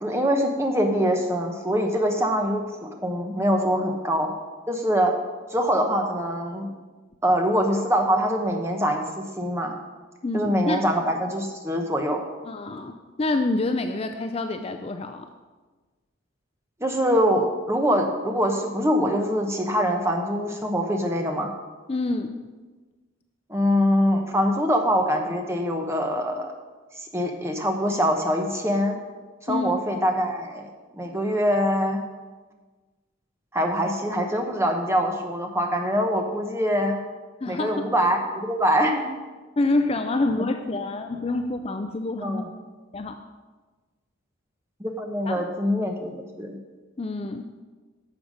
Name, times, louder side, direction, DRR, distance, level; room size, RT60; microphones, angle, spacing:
voice 1, 0.0-4.3 4.7-5.1 5.5-6.7 7.2-9.7 10.3-12.2 16.8-21.5 23.5-26.5 27.1-29.0 29.5-30.7 31.0-32.0 33.5-37.0 37.5-39.0 42.2-42.4 44.8-46.5, equal, 15° right, 3 dB, 1.0 m, -24 dB
voice 2, 10.2-10.8 12.4-15.3 21.9-22.4 29.5-29.8 37.4-37.9 39.6-42.5 42.9-43.2 45.3-45.5 47.0-47.5, left 2 dB, 30° left, 6 dB, 0.4 m, -27 dB
11.5 x 7.1 x 5.1 m, 1.3 s
head